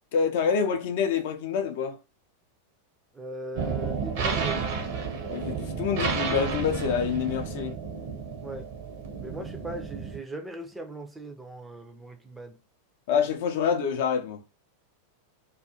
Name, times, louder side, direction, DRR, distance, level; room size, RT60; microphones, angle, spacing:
voice 1, 0.1-2.0 5.3-7.8 13.1-14.4, left 6 dB, 55° left, 0.5 m, -26 dB
voice 2, 3.1-4.7 8.4-8.7 9.2-12.6, right 1 dB, 10° right, 0.4 m, -39 dB
sound 1, 3.5-10.2, right 5 dB, 50° right, 0.6 m, -31 dB
2.4 x 2.3 x 2.7 m
figure-of-eight pair, 90°, 0 cm